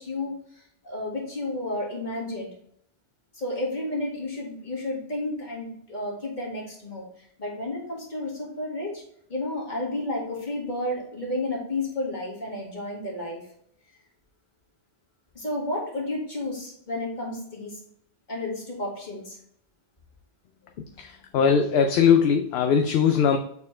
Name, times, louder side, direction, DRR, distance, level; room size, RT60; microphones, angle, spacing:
voice 1, 0.0-2.5 3.3-7.1 7.4-9.0 9.3-13.5 15.4-17.8 18.3-19.4, left 1 dB, 45° left, -3 dB, 2.0 m, -31 dB
voice 2, 20.8-23.4, left 7 dB, 75° left, 5 dB, 0.8 m, -21 dB
7.0 x 4.2 x 3.1 m, 0.69 s
omnidirectional pair, 1.1 m